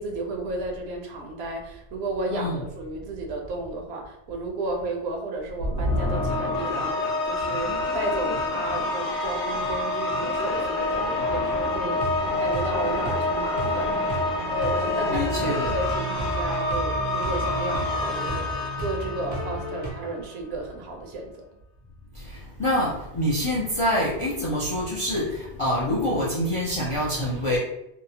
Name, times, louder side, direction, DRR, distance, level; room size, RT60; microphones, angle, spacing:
voice 1, 0.0-12.0 12.4-14.0 14.6-21.5, right 2 dB, 70° right, 1 dB, 0.8 m, -33 dB
voice 2, 2.3-2.6 15.0-15.7 22.1-27.6, left 1 dB, 50° left, -6 dB, 0.4 m, -26 dB
sound 1, 5.6-20.0, left 2 dB, 90° left, 0.9 m, -27 dB
sound 2, 11.6-19.9, right 2 dB, 50° right, 0.5 m, -34 dB
2.8 x 2.0 x 2.6 m, 0.84 s
omnidirectional pair, 1.1 m